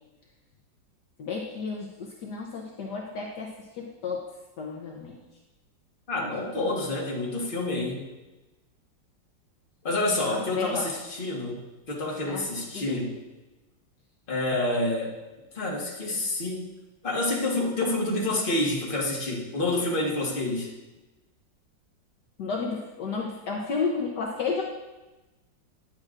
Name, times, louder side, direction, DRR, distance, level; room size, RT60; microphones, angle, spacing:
voice 1, 1.2-4.2 4.6-5.2 10.2-10.8 12.3-12.4 12.7-12.8 22.4-24.6, left 4 dB, 65° left, -1 dB, 1.4 m, -32 dB
voice 2, 6.1-8.0 9.8-13.1 14.3-15.1 15.5-16.7 17.0-20.7, left 2 dB, 30° left, -4 dB, 1.6 m, -28 dB
10.0 x 7.6 x 2.5 m, 1.1 s
omnidirectional pair, 2.0 m